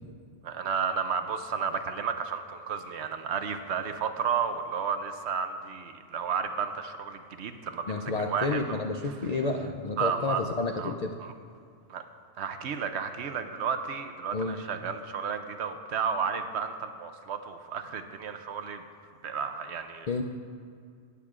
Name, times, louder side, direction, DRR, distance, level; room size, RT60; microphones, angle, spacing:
voice 1, 0.4-9.1 10.0-10.4 10.8-10.9 11.2-11.3 11.9-12.1 12.4-18.8 19.2-20.1, right 6 dB, 65° right, 8 dB, 0.8 m, -32 dB
voice 2, 7.9-11.1 14.3-14.6 20.1-20.2, left 3 dB, 85° left, 3 dB, 0.3 m, -30 dB
19.0 x 8.1 x 2.4 m, 2.3 s
omnidirectional pair, 1.3 m